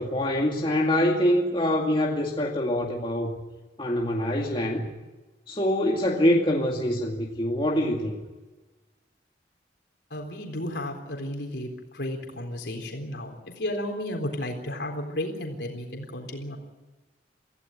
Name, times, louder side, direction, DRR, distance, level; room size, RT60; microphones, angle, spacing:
voice 1, 0.0-3.4 3.8-4.9 5.5-8.2, left 1 dB, 30° left, -2 dB, 2.3 m, -25 dB
voice 2, 10.1-16.6, left 1 dB, 75° left, 2 dB, 3.9 m, -33 dB
26.0 x 16.0 x 9.1 m, 1.2 s
head